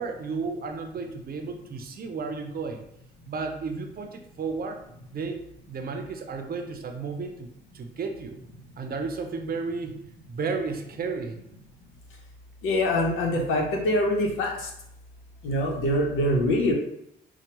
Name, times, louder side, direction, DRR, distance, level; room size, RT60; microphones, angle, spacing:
voice 1, 0.0-2.8 3.3-4.8 5.1-7.5 7.7-8.4 8.8-10.0 10.3-11.4, right 4 dB, 50° right, 5 dB, 0.6 m, -33 dB
voice 2, 12.6-14.5 15.4-16.7, left 1 dB, 85° left, 0 dB, 0.9 m, -24 dB
4.4 x 2.3 x 2.9 m, 0.77 s
cardioid pair, 90°, 20 cm